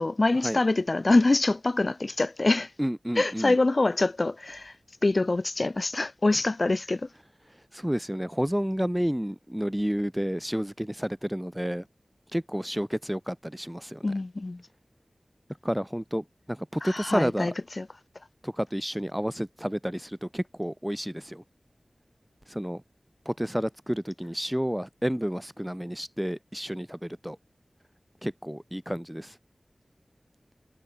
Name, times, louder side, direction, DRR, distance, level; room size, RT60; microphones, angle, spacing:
voice 1, 0.0-2.7 3.1-4.7 5.0-7.1 14.0-14.6 16.8-17.9, left 2 dB, 50° left, 4.9 m, -25 dB
voice 2, 2.8-3.6 7.7-11.9 12.3-14.0 15.6-17.5 18.4-21.4 22.5-22.8 23.2-27.4 28.2-29.4, equal, 5° right, 4.5 m, -30 dB
wide cardioid pair, 70°, 0 cm